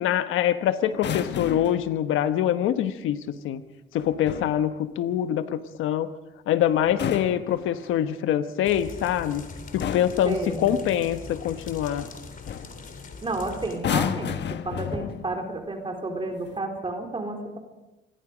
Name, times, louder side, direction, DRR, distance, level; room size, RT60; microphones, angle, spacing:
voice 1, 0.0-3.6 3.9-6.1 6.5-9.4 9.7-12.1, left 10 dB, 90° left, 10 dB, 1.3 m, -25 dB
sound 1, 0.9-1.9 4.0-4.6 6.8-8.1 9.2-9.4 9.8-10.3 12.0-12.2 12.5-12.8 13.7-15.4 16.3-16.6, left 9 dB, 60° left, 1.3 m, -31 dB
sound 2, 8.6-13.8, left 4 dB, 45° left, 3.6 m, -41 dB
voice 2, 10.2-10.7 13.2-14.4 14.6-17.6, right 2 dB, 25° right, 3 dB, 3.9 m, -31 dB
26.0 x 21.0 x 5.2 m, 1.0 s
cardioid pair, 90°, 20 cm